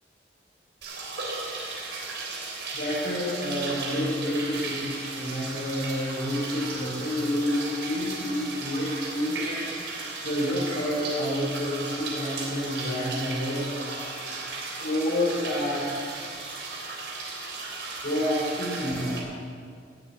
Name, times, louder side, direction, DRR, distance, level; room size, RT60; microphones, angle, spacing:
sound 1, 0.8-19.2, right 3 dB, 80° right, 3.4 m, -35 dB
voice 1, 2.7-9.7 10.0-13.7 14.8-16.0 18.0-19.2, left 1 dB, 70° left, -9 dB, 4.9 m, -29 dB
18.0 x 8.3 x 8.9 m, 2.2 s
head